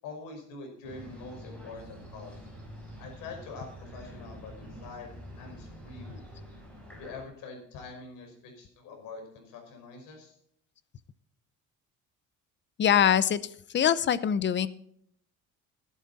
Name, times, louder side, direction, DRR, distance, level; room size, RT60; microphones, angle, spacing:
voice 1, 0.0-2.5 3.0-6.2 6.9-10.4, left 4 dB, 85° left, 3 dB, 5.4 m, -45 dB
sound 1, 0.8-7.2, equal, 5° left, 6.8 m, -46 dB
voice 2, 12.8-13.4 13.7-14.7, left 9 dB, 35° left, 16 dB, 0.7 m, -23 dB
13.5 x 11.5 x 4.1 m, 0.67 s
cardioid pair, 140°, 32 cm